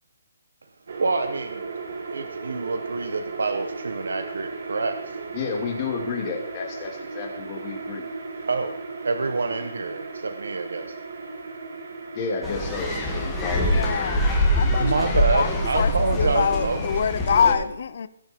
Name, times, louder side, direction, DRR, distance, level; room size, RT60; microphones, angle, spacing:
sound 1, 0.9-14.2, right 4 dB, 60° right, 2.3 m, -36 dB
voice 1, 1.0-1.6 2.1-5.0 8.5-8.7 9.0-10.9 14.8-16.8, right 4 dB, 85° right, 8 dB, 1.3 m, -27 dB
voice 2, 5.3-8.1 12.1-14.5, left 5 dB, 25° left, 1 dB, 2.6 m, -31 dB
sound 2, 12.4-17.5, left 1 dB, 5° left, 2.1 m, -24 dB
voice 3, 13.7-18.1, left 7 dB, 50° left, 14 dB, 0.6 m, -25 dB
18.5 x 6.7 x 4.5 m, 0.86 s
hypercardioid pair, 170°, 0 cm